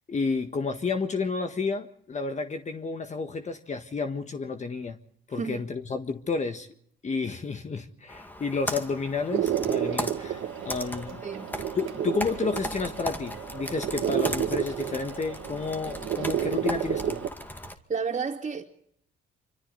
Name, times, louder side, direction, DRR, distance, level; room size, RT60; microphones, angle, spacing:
voice 1, 0.1-5.0 5.3-6.7 7.0-11.2 11.7-17.2, left 4 dB, 35° left, 1.6 m, -31 dB
voice 2, 5.3-5.6 11.2-11.5 17.9-18.6, right 5 dB, 35° right, 2.7 m, -31 dB
Computer keyboard, 8.1-17.7, left 1 dB, 10° left, 2.2 m, -38 dB
sound 1, 9.3-17.3, right 10 dB, 80° right, 2.0 m, -31 dB
26.0 x 25.0 x 4.1 m
cardioid pair, 90°, 20 cm